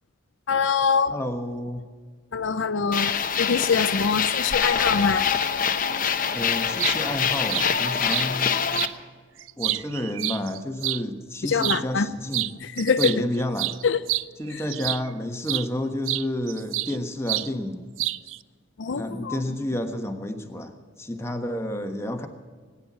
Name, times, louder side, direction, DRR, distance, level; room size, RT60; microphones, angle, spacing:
voice 1, 0.5-1.1 2.3-3.1 3.4-5.3 11.4-12.1 12.6-13.1 13.8-14.0 14.5-14.6 18.8-19.6, left 5 dB, 70° left, 10 dB, 0.6 m, -24 dB
voice 2, 1.1-1.8 6.3-8.6 9.6-12.5 13.0-13.8 14.4-17.9 18.8-22.3, left 1 dB, 15° left, 4 dB, 1.3 m, -30 dB
sound 1, 2.9-8.9, left 7 dB, 45° left, 0.9 m, -24 dB
sound 2, 6.6-7.0 7.5-7.7 8.1-8.3 8.7-8.9 9.4-11.0 11.5-11.8 12.3-12.5 12.8-15.1 15.5-15.7 16.1-17.0 17.3-17.5 18.0-18.4, right 16 dB, 85° right, 0.4 m, -28 dB
18.5 x 9.9 x 7.4 m, 1.5 s
head